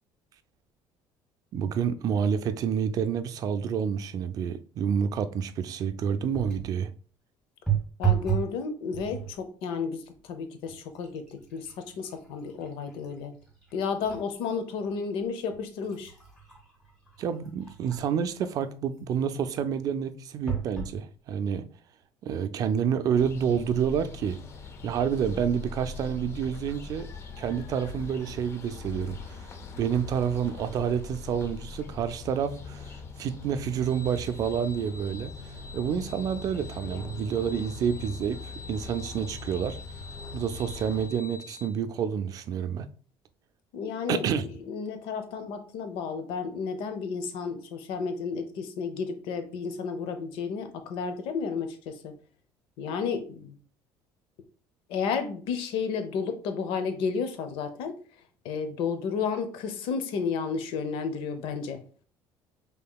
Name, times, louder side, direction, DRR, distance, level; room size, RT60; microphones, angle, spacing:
voice 1, 1.5-6.9 17.2-21.7 22.2-24.4 24.8-27.1 27.4-29.4 29.8-35.3 35.7-39.8 40.3-42.9 44.1-44.4, right 7 dB, 40° right, 0.4 m, -29 dB
sound 1, 6.3-6.8 7.7-8.6 8.9-9.4 10.1-10.3 10.7-14.3 14.7-14.8 15.5-18.2 20.5-21.0 21.7-21.8 22.0-22.1, right 9 dB, 5° left, 1.7 m, -33 dB
voice 2, 8.0-13.3 13.7-16.1 43.7-44.3 44.7-52.1 52.8-53.6 54.9-58.0 58.4-61.8, left 5 dB, 75° left, 0.8 m, -32 dB
sound 2, 23.1-41.1, left 4 dB, 30° left, 0.5 m, -41 dB
sound 3, 33.8-41.7, left 3 dB, 60° left, 1.1 m, -47 dB
5.6 x 3.7 x 2.3 m
cardioid pair, 165°, 9 cm